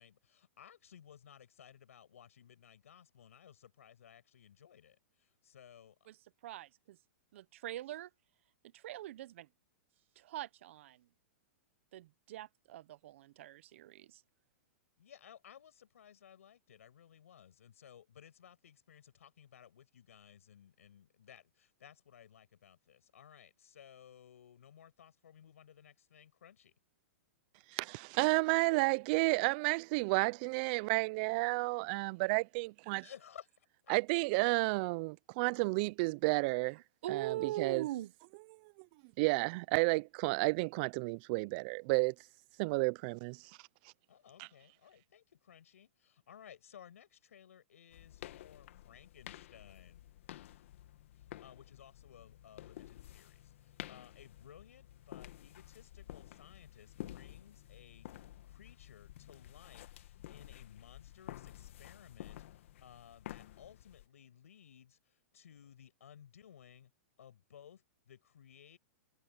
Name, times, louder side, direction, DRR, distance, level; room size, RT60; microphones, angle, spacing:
voice 1, 0.0-6.0 15.0-26.7 33.0-33.9 44.1-50.0 51.2-66.9 67.2-68.8, left 9 dB, 85° left, 6.1 m, -58 dB
voice 2, 6.4-7.0 7.3-8.1 8.7-9.5 10.2-11.0 11.9-14.2 37.0-38.1, right 14 dB, 60° right, 0.9 m, -42 dB
voice 3, 27.7-33.1 33.9-36.8 37.1-37.9 39.2-42.1 42.6-43.4 44.4-44.5, right 27 dB, 45° right, 0.4 m, -31 dB
sound 1, 47.9-64.1, left 13 dB, 65° left, 1.7 m, -51 dB
hypercardioid pair, 140°, 7 cm